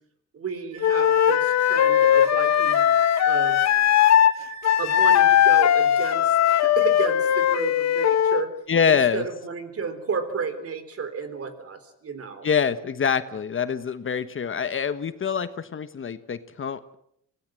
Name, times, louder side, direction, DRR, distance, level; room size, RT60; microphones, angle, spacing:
voice 1, 0.3-2.9 3.2-3.6 4.8-8.5 8.9-12.5, right 5 dB, 50° right, 10 dB, 3.9 m, -32 dB
Wind instrument woodwind instrument, 0.7-5.5, right 11 dB, 80° right, 4.9 m, -39 dB
Wind instrument woodwind instrument 2, 0.8-4.4 4.6-8.5, left 10 dB, 60° left, 1.0 m, -19 dB
voice 2, 8.7-9.2 12.4-17.0, left 7 dB, 45° left, 12 dB, 1.3 m, -25 dB
25.0 x 17.5 x 7.7 m, 0.74 s
cardioid pair, 90°, 30 cm